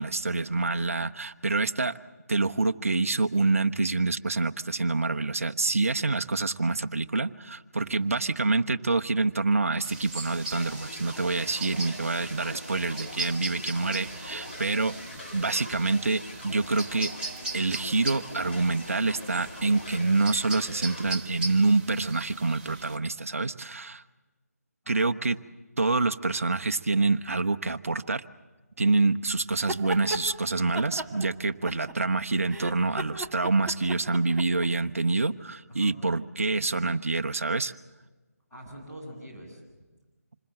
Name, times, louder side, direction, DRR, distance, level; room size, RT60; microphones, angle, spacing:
voice 1, 0.0-1.9 2.3-15.0 15.3-17.1 17.5-24.0 24.9-25.4 25.8-28.2 28.8-37.7, right 3 dB, 55° right, 10 dB, 0.9 m, -26 dB
sound 1, 9.8-23.0, right 3 dB, 35° right, 1.5 m, -39 dB
sound 2, 10.5-21.2, left 2 dB, 45° left, 3.5 m, -43 dB
sound 3, 29.5-30.2 30.7-32.1 32.5-34.7, right 1 dB, 5° right, 0.9 m, -35 dB
voice 2, 38.5-39.8, right 1 dB, 10° left, -7 dB, 7.4 m, -46 dB
27.0 x 21.0 x 7.7 m, 1.2 s
figure-of-eight pair, 155°, 9 cm